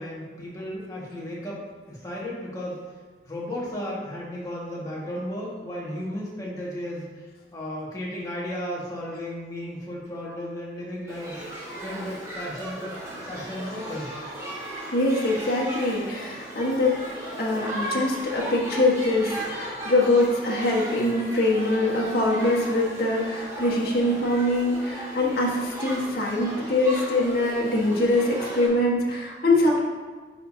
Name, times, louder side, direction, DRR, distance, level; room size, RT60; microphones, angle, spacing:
voice 1, 0.0-2.8 3.2-7.2 7.5-11.4 11.7-12.9 13.3-14.1, left 1 dB, 20° left, -6 dB, 1.8 m, -34 dB
Shout / Human group actions, 11.1-28.7, right 1 dB, 20° right, 1.6 m, -36 dB
voice 2, 14.9-16.9 17.4-29.8, left 2 dB, 55° left, -4 dB, 1.5 m, -23 dB
10.5 x 5.0 x 2.8 m, 1.4 s
head